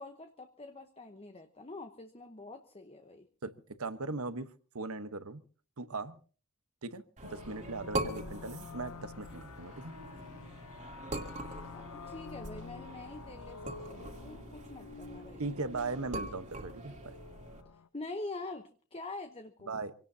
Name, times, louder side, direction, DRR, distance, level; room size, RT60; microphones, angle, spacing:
voice 1, 0.0-3.3 11.7-15.5 17.7-19.8, left 2 dB, 25° left, 7 dB, 0.9 m, -45 dB
voice 2, 3.4-5.4 5.8-6.2 6.8-9.9 15.4-17.1 19.7-19.9, right 3 dB, 80° right, 12 dB, 1.1 m, -39 dB
sound 1, 7.2-17.9, left 5 dB, 85° left, 0.7 m, -49 dB
sound 2, 7.2-17.6, right 2 dB, 35° right, 2.4 m, -43 dB
26.0 x 18.0 x 2.8 m, 0.40 s
head